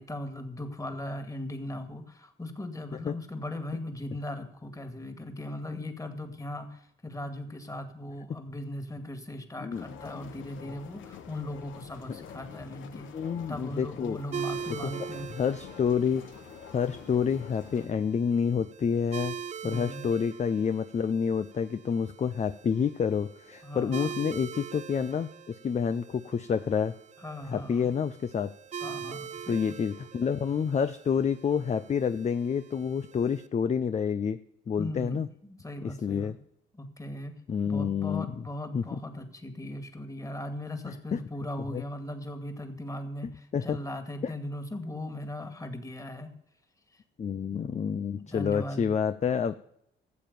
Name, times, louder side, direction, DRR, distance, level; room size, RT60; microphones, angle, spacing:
voice 1, 0.0-13.1 13.5-15.3 19.6-20.1 23.6-24.2 27.2-27.9 28.8-29.8 34.8-36.3 36.7-37.3 37.6-46.3 46.9-47.0 47.5-47.6 48.1-48.9, left 1 dB, 15° left, 7 dB, 2.2 m, -38 dB
sound 1, 9.7-17.9, left 8 dB, 75° left, 1.3 m, -47 dB
voice 2, 13.1-14.2 14.8-14.9 15.3-16.2 16.7-19.4 19.6-26.9 27.5-28.5 29.5-34.4 34.7-35.3 36.0-36.3 37.5-38.4 38.7-38.8 40.8-41.2 41.7-41.8 43.5-43.8 44.2-44.3 47.2-49.6, left 6 dB, 35° left, 11 dB, 0.6 m, -28 dB
sound 2, 14.3-33.5, right 7 dB, 35° right, 0.5 m, -43 dB
14.0 x 7.5 x 6.9 m, 0.75 s
cardioid pair, 90°, 20 cm